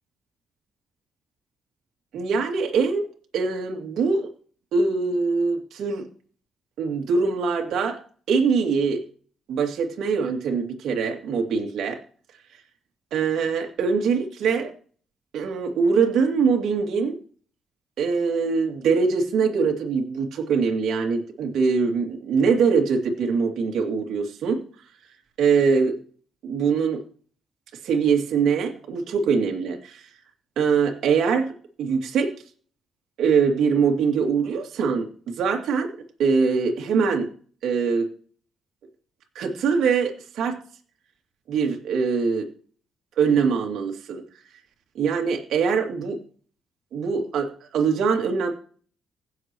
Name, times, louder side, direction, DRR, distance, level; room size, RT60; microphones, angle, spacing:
voice 1, 2.1-3.1 3.3-4.3 4.7-6.0 6.8-8.0 8.3-9.0 9.5-12.0 13.1-14.7 15.3-17.2 18.0-24.6 25.4-26.0 26.4-27.0 27.8-30.1 30.6-32.3 33.2-35.9 36.2-37.3 37.6-38.1 39.3-40.6 41.5-42.5 43.2-44.2 44.9-46.2 46.9-48.5, right 5 dB, 75° right, 1 dB, 2.4 m, -23 dB
16.5 x 7.2 x 3.0 m, 0.42 s
cardioid pair, 90°, 0 cm